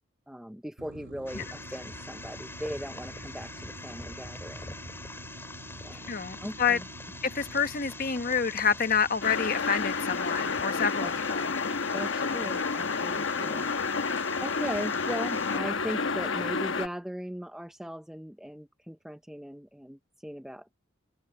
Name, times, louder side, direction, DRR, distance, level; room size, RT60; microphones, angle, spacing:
voice 1, 0.3-4.7 5.8-6.1 6.4-6.9 11.0-11.2 11.9-13.7 14.4-20.7, equal, 5° right, 0.5 m, -39 dB
sound 1, 0.8-10.6, right 2 dB, 80° right, 1.2 m, -48 dB
sound 2, 1.3-15.6, left 2 dB, 15° left, 3.8 m, -44 dB
voice 2, 6.1-6.8 7.2-11.0 11.3-11.5, left 6 dB, 50° left, 1.2 m, -28 dB
sound 3, 9.2-16.9, left 4 dB, 85° left, 1.2 m, -30 dB
head